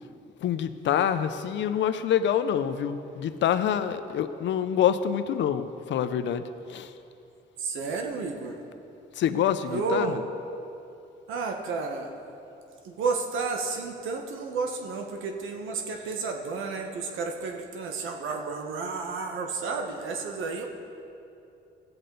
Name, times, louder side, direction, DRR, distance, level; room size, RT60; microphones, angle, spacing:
voice 1, 0.4-6.4 6.7-6.9 9.2-10.1, left 9 dB, 65° left, 11 dB, 0.6 m, -26 dB
voice 2, 7.6-8.6 9.6-10.2 11.3-12.1 12.8-20.6, right 4 dB, 85° right, 3 dB, 1.2 m, -31 dB
16.5 x 7.9 x 3.9 m, 2.7 s
cardioid pair, 90°, 20 cm